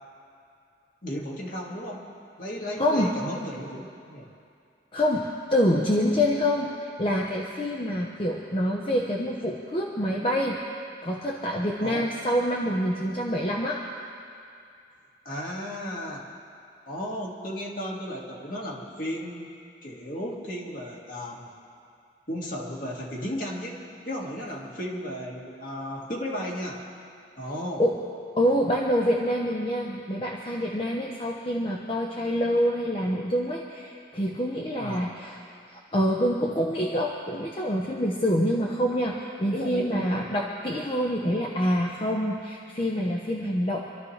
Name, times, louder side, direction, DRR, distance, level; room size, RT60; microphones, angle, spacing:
voice 1, 1.0-2.1 2.4-4.3 11.8-12.0 15.3-16.2 16.9-19.5 19.8-21.5 22.3-26.8 27.4-27.8 34.8-35.0 39.5-40.1, equal, 50° left, -3 dB, 2.1 m, -34 dB
voice 2, 2.8-3.1 4.9-10.6 11.0-13.8 27.8-28.0 28.4-35.4 35.9-43.8, equal, 30° left, -2 dB, 0.9 m, -26 dB
25.5 x 13.0 x 3.3 m, 2.5 s
head